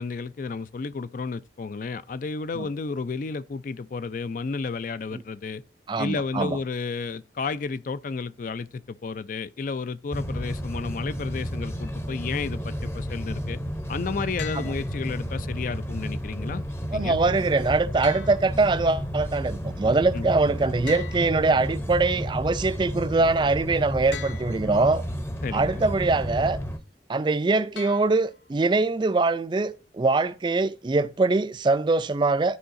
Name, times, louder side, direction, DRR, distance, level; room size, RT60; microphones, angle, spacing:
voice 1, 0.0-5.6 6.0-13.6 13.9-16.6 16.9-17.2 20.1-20.3 25.4-25.8, left 4 dB, 45° left, 0.4 m, -32 dB
voice 2, 5.9-6.6 14.6-14.7 16.9-25.0 25.5-26.6 27.1-32.6, right 3 dB, 25° right, 0.3 m, -23 dB
sound 1, 10.1-26.8, equal, 15° left, 0.7 m, -32 dB
sound 2, 14.4-15.4 18.0-19.1 20.9-22.1 24.1-25.1 27.8-28.7, left 9 dB, 90° left, 0.7 m, -43 dB
13.0 x 4.7 x 2.5 m
head